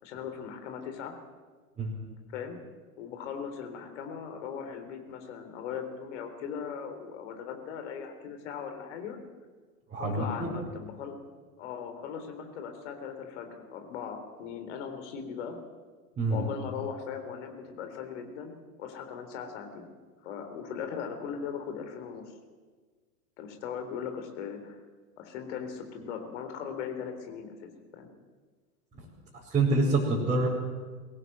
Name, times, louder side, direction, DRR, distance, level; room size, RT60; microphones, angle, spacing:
voice 1, 0.0-1.2 2.3-2.6 3.0-9.2 10.0-11.2 11.6-15.6 16.3-19.9 20.2-22.2 23.4-24.8 25.2-28.1, left 7 dB, 45° left, 6 dB, 3.8 m, -39 dB
voice 2, 9.9-10.5 16.2-16.5 29.0-30.5, right 2 dB, 15° right, -6 dB, 5.0 m, -27 dB
23.0 x 18.0 x 7.9 m, 1.5 s
figure-of-eight pair, 100°, 48 cm